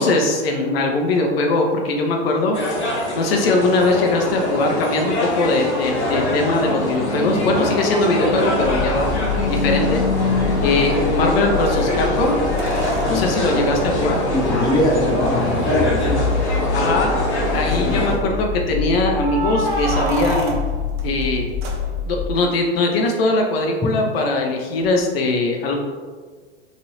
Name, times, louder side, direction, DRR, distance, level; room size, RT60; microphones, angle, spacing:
voice 1, 0.0-2.6 3.1-9.1 9.4-10.0 10.6-12.4 13.0-14.2 16.7-17.1 17.5-20.6 21.0-21.5 22.0-25.8, left 2 dB, 60° left, 1 dB, 0.7 m, -20 dB
sound 1, 2.5-18.1, left 1 dB, 90° left, 0.9 m, -23 dB
sound 2, 8.6-22.3, left 4 dB, 40° left, 1.1 m, -27 dB
sound 3, 12.6-15.0 15.9-16.0 16.3-16.4 17.0-17.4 19.1-22.3 24.8-24.9, right 2 dB, 65° right, 0.7 m, -29 dB
voice 2, 14.3-16.3 17.8-18.3, left 1 dB, 15° left, -3 dB, 0.5 m, -22 dB
3.0 x 2.6 x 2.9 m, 1.5 s
hypercardioid pair, 100°, 33 cm